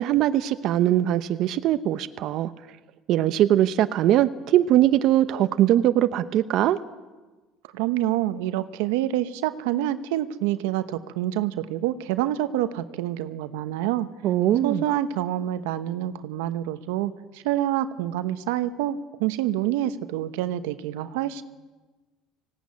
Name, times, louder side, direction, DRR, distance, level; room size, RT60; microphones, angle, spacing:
voice 1, 0.0-2.5 3.1-6.8 14.2-14.8, right 12 dB, 60° right, 11 dB, 0.8 m, -21 dB
voice 2, 7.7-14.1 14.6-21.4, right 13 dB, 90° right, 11 dB, 1.0 m, -27 dB
18.5 x 16.5 x 9.6 m, 1.2 s
supercardioid pair, 105°, 0 cm